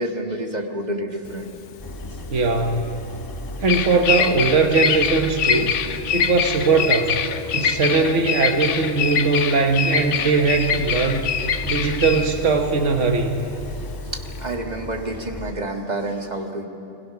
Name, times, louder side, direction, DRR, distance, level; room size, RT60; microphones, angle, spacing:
voice 1, 0.0-1.5 5.8-6.0 10.1-10.3 14.1-16.7, right 1 dB, 35° right, 3 dB, 1.8 m, -29 dB
Bird vocalization bird call bird song, 1.3-14.5, left 7 dB, 80° left, 1.1 m, -25 dB
sound 1, 1.8-15.5, left 1 dB, 20° left, 1.3 m, -36 dB
voice 2, 2.3-3.0 3.6-7.2 7.5-13.4, right 4 dB, 90° right, 4 dB, 1.6 m, -20 dB
29.0 x 22.0 x 5.8 m, 2.7 s
omnidirectional pair, 1.2 m